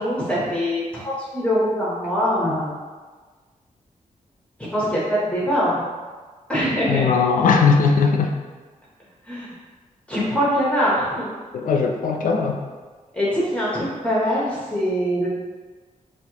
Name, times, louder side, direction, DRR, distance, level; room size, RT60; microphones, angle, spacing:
voice 1, 0.0-2.7 4.7-5.8 6.5-7.1 9.3-9.5 10.1-11.3 13.1-15.3, equal, 10° left, -7 dB, 0.8 m, -23 dB
voice 2, 6.9-8.3 11.5-12.6, left 5 dB, 75° left, 3 dB, 0.4 m, -19 dB
4.2 x 2.5 x 2.8 m, 1.4 s
wide cardioid pair, 135°, 14 cm